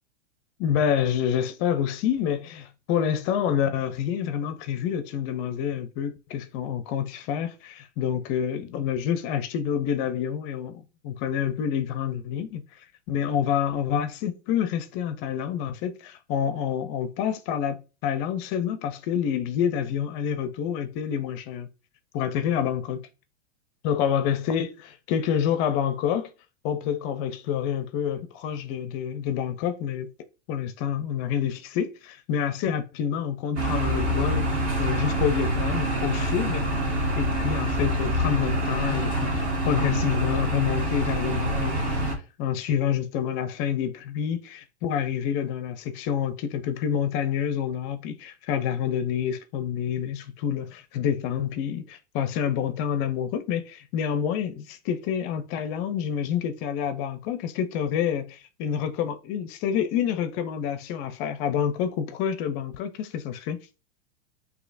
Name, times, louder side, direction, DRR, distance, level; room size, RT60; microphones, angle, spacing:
voice 1, 0.6-21.7 22.1-23.0 23.8-26.3 26.6-30.1 30.5-42.1 42.4-63.6, left 8 dB, 40° left, 0.5 m, -28 dB
sound 1, 33.6-42.2, right 1 dB, 35° right, 1.4 m, -26 dB
6.2 x 2.8 x 2.5 m
hypercardioid pair, 125°, 35 cm